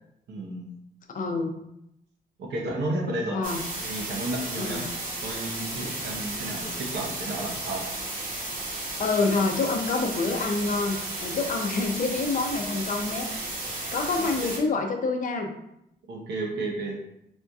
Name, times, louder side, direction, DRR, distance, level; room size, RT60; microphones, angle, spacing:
voice 1, 0.3-0.7 2.4-3.4 3.8-4.9 5.2-7.9 14.2-14.3 16.1-17.0, right 2 dB, 90° right, -1 dB, 0.9 m, -32 dB
voice 2, 1.1-1.5 3.3-3.6 4.6-4.9 9.0-13.3 13.9-15.5, left 3 dB, 50° left, 4 dB, 0.5 m, -27 dB
sound 1, 3.4-14.6, right 2 dB, 50° right, 0.9 m, -34 dB
4.3 x 2.6 x 2.3 m, 0.81 s
cardioid pair, 100°, 17 cm